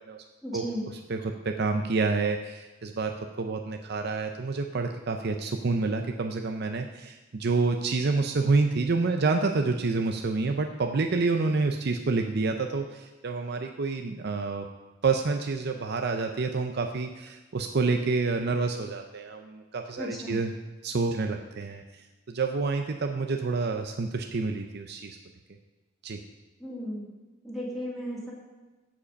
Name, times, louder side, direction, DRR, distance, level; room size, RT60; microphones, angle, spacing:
voice 1, 0.4-0.9 20.0-20.4 26.6-27.1 27.4-28.3, equal, ahead, -6 dB, 2.7 m, -35 dB
voice 2, 1.1-14.7 15.0-20.5 20.8-25.2 26.0-26.2, right 3 dB, 55° right, 4 dB, 0.6 m, -28 dB
15.0 x 5.1 x 5.2 m, 1.2 s
head